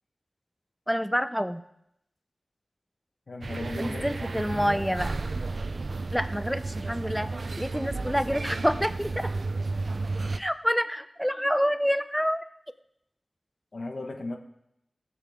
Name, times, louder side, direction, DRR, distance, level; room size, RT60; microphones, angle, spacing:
voice 1, 0.9-1.6 3.8-5.2 6.1-7.3 7.6-9.3 10.4-12.4, equal, ahead, 11 dB, 0.5 m, -27 dB
voice 2, 3.3-4.3 13.7-14.4, left 2 dB, 60° left, 4 dB, 1.2 m, -36 dB
sound 1, 3.4-10.4, right 3 dB, 65° right, 0.5 m, -32 dB
17.0 x 7.6 x 3.6 m, 0.79 s
wide cardioid pair, 90°, 0 cm